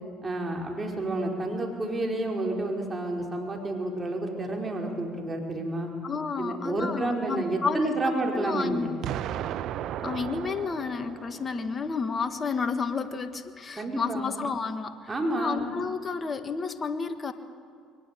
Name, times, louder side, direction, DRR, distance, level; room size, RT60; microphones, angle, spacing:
voice 1, 0.2-5.9 6.4-8.9 13.8-14.3 15.1-15.7, right 2 dB, 25° right, 1 dB, 4.7 m, -30 dB
voice 2, 6.0-9.0 10.0-17.3, left 5 dB, 35° left, 9 dB, 1.6 m, -31 dB
Explosion, 9.0-12.0, right 11 dB, 65° right, 0.7 m, -35 dB
23.0 x 19.5 x 8.5 m, 2.1 s
hypercardioid pair, 70°, 0 cm